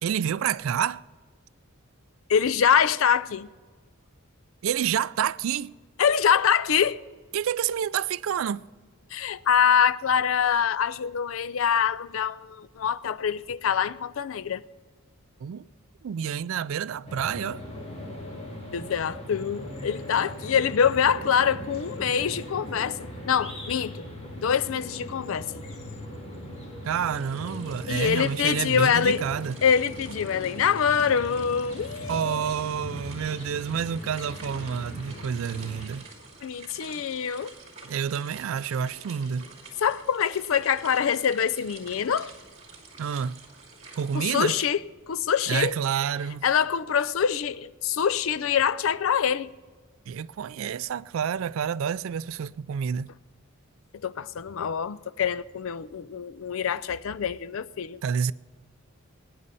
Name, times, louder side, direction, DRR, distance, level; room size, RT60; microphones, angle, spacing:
voice 1, 0.0-1.0 4.6-5.7 7.3-8.6 15.4-15.7 16.0-17.6 26.8-29.6 32.1-36.0 37.8-39.5 43.0-43.4 44.0-44.5 45.5-46.4 50.1-53.1 58.0-58.3, right 8 dB, 65° right, 0.3 m, -28 dB
voice 2, 2.3-3.5 6.0-7.0 9.1-14.6 18.7-23.0 23.3-24.1 24.4-25.6 27.9-29.2 29.6-32.5 36.4-37.5 39.8-42.3 44.1-44.8 45.1-45.8 46.4-49.5 54.0-58.0, left 7 dB, 65° left, 0.4 m, -25 dB
sound 1, 17.1-35.9, equal, 30° left, 2.3 m, -39 dB
sound 2, 27.1-44.7, right 3 dB, 30° right, 2.7 m, -48 dB
20.0 x 9.7 x 4.1 m
head